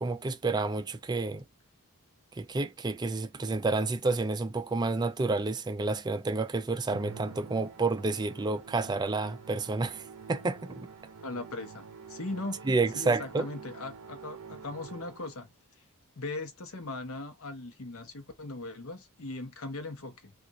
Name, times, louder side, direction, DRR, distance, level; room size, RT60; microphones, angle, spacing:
voice 1, 0.0-1.4 2.4-10.9 12.7-13.5, right 3 dB, 20° right, 0.3 m, -30 dB
Musical instrument, 6.9-15.4, right 5 dB, 70° right, 0.6 m, -47 dB
voice 2, 11.2-12.6 12.9-15.5 16.2-20.3, left 2 dB, 65° left, 0.8 m, -39 dB
2.5 x 2.4 x 4.0 m
head